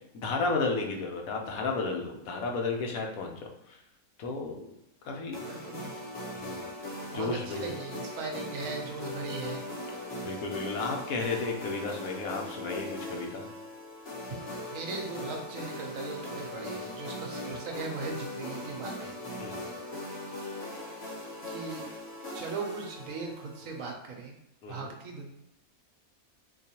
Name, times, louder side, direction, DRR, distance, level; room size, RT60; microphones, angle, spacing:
voice 1, 0.1-3.3 3.7-3.8 4.2-4.7 5.0-5.4 6.3-6.6 7.1-7.7 10.2-13.5 19.4-19.7 24.6-24.9, left 3 dB, 75° left, 1 dB, 1.1 m, -33 dB
sound 1, 5.3-23.9, left 1 dB, 50° left, 1.1 m, -40 dB
voice 2, 5.5-5.9 7.1-9.7 14.7-19.1 21.5-22.0 22.3-24.3 24.7-25.3, right 4 dB, 70° right, 2 dB, 1.0 m, -39 dB
3.8 x 2.7 x 2.8 m, 0.83 s
omnidirectional pair, 1.5 m